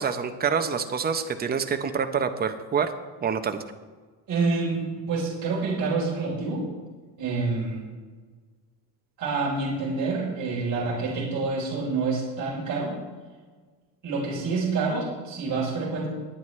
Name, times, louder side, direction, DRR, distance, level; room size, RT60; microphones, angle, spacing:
voice 1, 0.0-2.9 3.2-3.6, right 6 dB, 25° right, 7 dB, 0.8 m, -26 dB
voice 2, 4.3-6.6 7.2-7.8 9.2-12.9 14.0-16.1, right 4 dB, 45° right, -5 dB, 4.3 m, -27 dB
21.0 x 9.2 x 3.3 m, 1.4 s
cardioid pair, 140°, 41 cm